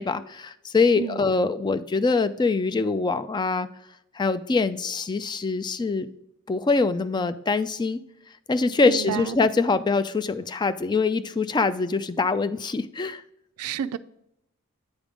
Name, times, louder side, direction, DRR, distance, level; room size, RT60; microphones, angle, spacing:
voice 1, 0.0-3.7 4.1-6.1 6.5-8.0 8.5-13.2, left 4 dB, 20° left, 0.3 m, -24 dB
voice 2, 8.8-9.4 13.6-14.0, right 9 dB, 80° right, 0.3 m, -30 dB
9.1 x 3.5 x 4.9 m
head